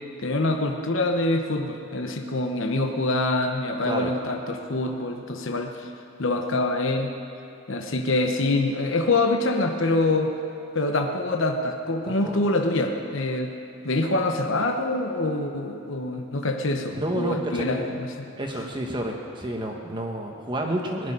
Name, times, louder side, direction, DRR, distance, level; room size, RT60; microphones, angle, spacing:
voice 1, 0.2-5.9 6.2-7.1 7.7-10.3 10.7-13.5 13.8-18.1, left 2 dB, 60° left, 3 dB, 1.0 m, -25 dB
voice 2, 16.9-17.8 18.4-21.1, right 1 dB, 20° right, 1 dB, 1.1 m, -30 dB
20.0 x 6.8 x 9.9 m, 2.8 s
head